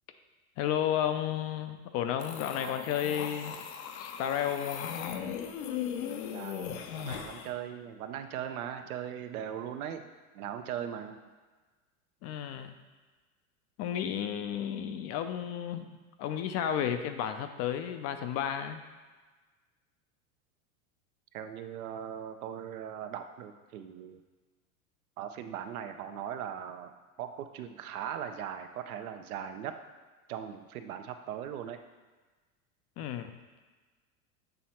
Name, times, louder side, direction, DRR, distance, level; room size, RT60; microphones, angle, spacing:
voice 1, 0.6-3.6 4.0-4.9 12.2-12.8 13.8-18.8 33.0-33.3, left 9 dB, 35° left, 8 dB, 0.4 m, -32 dB
sound 1, 2.2-7.5, left 8 dB, 70° left, 0.8 m, -38 dB
voice 2, 6.3-10.1 10.3-11.2 21.3-24.2 25.2-26.9 27.2-29.7 30.3-31.8, right 9 dB, 80° right, 8 dB, 0.7 m, -39 dB
7.8 x 3.1 x 4.3 m, 1.3 s
hypercardioid pair, 105°, 43 cm